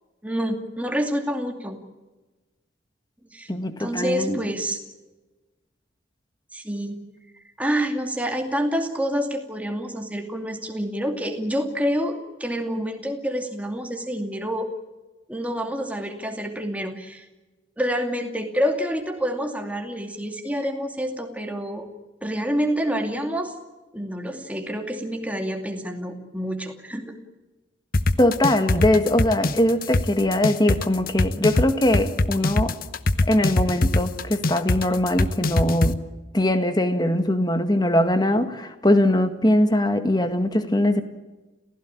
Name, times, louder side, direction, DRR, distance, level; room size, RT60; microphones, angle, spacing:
voice 1, 0.2-1.8 3.3-3.5 3.8-4.8 6.5-7.0 7.6-14.7 15.3-17.3 17.8-21.9 22.2-23.5 23.9-27.2, equal, 5° right, 3 dB, 2.5 m, -27 dB
voice 2, 3.5-4.4 28.2-32.8 33.2-36.0 36.3-41.0, left 1 dB, 20° left, 8 dB, 1.8 m, -21 dB
sound 1, 27.9-35.9, left 2 dB, 45° left, 0.9 m, -21 dB
30.0 x 16.0 x 8.8 m, 1.2 s
head